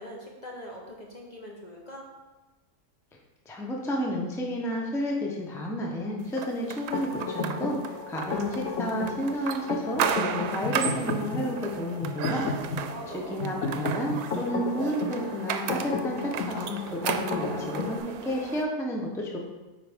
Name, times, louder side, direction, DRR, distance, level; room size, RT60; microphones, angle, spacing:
voice 1, 0.0-2.1 12.9-13.4, equal, 35° left, -2 dB, 0.9 m, -42 dB
voice 2, 3.5-12.9 13.1-19.4, equal, 5° left, -1 dB, 0.7 m, -31 dB
sound 1, 6.4-18.6, right 8 dB, 85° right, 1.1 m, -35 dB
sound 2, 6.9-18.0, left 4 dB, 70° left, 1.2 m, -33 dB
9.3 x 4.7 x 3.6 m, 1.1 s
omnidirectional pair, 1.5 m